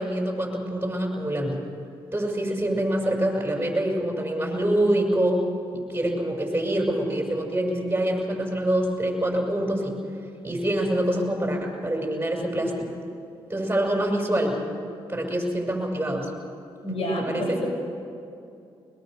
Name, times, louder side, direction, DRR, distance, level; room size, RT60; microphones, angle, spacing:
voice 1, 0.0-1.6 2.1-5.4 5.7-9.9 10.4-12.9 13.5-14.5 15.1-16.3 17.3-17.6, right 1 dB, 20° right, 1 dB, 7.1 m, -25 dB
voice 2, 16.8-17.7, equal, 65° left, 0 dB, 6.9 m, -28 dB
23.0 x 21.0 x 6.8 m, 2.5 s
supercardioid pair, 60°, 11 cm